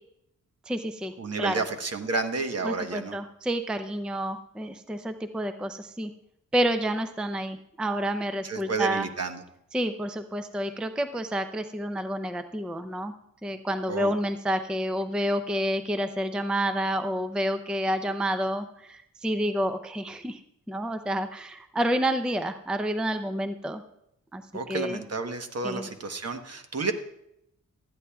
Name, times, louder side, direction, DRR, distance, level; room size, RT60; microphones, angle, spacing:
voice 1, 0.7-1.1 1.4-1.6 2.6-6.1 6.5-9.1 9.7-13.1 13.4-20.4 20.7-23.8 24.3-24.4 24.7-25.0 25.6-25.9, equal, 5° right, 8 dB, 0.5 m, -29 dB
voice 2, 1.2-3.1 8.4-9.4 13.9-14.1 24.5-26.9, right 3 dB, 50° right, 6 dB, 1.1 m, -31 dB
18.5 x 13.0 x 2.3 m, 0.80 s
wide cardioid pair, 135°, 32 cm